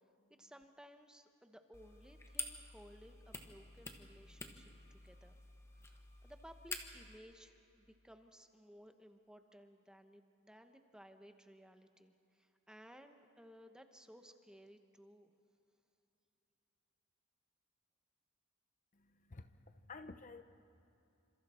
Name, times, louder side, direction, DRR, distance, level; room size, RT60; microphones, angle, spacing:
voice 1, 0.4-4.7 5.0-5.4 5.8-15.3, equal, 5° right, 6 dB, 1.0 m, -59 dB
sound 1, 1.7-7.2, left 3 dB, 15° left, 1.3 m, -49 dB
voice 2, 19.0-20.4, left 3 dB, 40° left, 9 dB, 0.8 m, -52 dB
29.0 x 26.5 x 4.4 m, 2.8 s
head